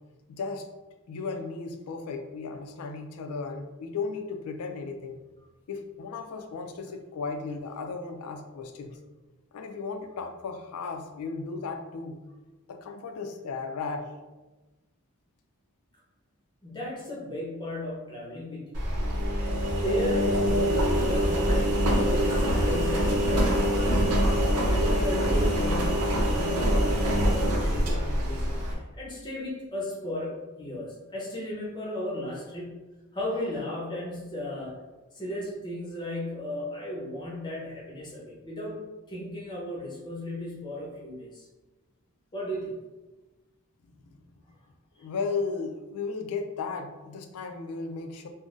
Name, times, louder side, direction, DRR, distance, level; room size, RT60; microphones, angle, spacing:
voice 1, 0.3-0.7 1.1-5.2 5.7-9.0 9.5-12.2 12.7-14.1 45.0-48.3, left 4 dB, 80° left, 6 dB, 0.4 m, -35 dB
voice 2, 16.6-18.8 19.6-23.8 24.7-32.8 33.1-34.8 35.1-38.8 39.1-41.4 42.3-42.8 45.0-45.1, left 1 dB, 20° left, -5 dB, 0.7 m, -35 dB
Engine, 18.7-28.7, equal, 85° right, 0.6 m, -24 dB
3.7 x 2.1 x 2.4 m, 1.2 s
head